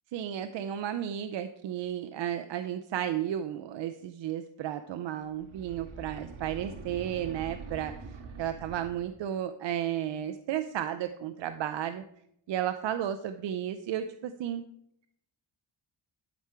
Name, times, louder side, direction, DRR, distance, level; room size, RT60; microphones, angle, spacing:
voice 1, 0.1-12.0 12.5-14.6, right 10 dB, 65° right, 9 dB, 0.6 m, -33 dB
sound 1, 5.3-9.2, right 4 dB, 85° right, 1.5 m, -44 dB
12.0 x 4.4 x 4.6 m, 0.74 s
cardioid pair, 150°, 47 cm